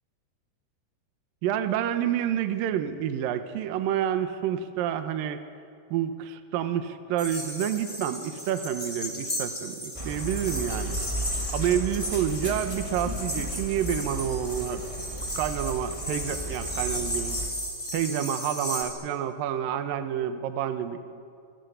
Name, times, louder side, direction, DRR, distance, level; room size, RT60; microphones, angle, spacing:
voice 1, 1.4-5.4 5.9-11.0 11.5-14.8 15.3-17.4 17.9-21.0, right 9 dB, 80° right, 8 dB, 2.0 m, -29 dB
sound 1, 7.2-18.8, equal, 10° left, 7.2 m, -35 dB
sound 2, 9.9-17.5, equal, 20° right, 0.9 m, -35 dB
28.0 x 25.5 x 8.2 m, 2.3 s
omnidirectional pair, 5.8 m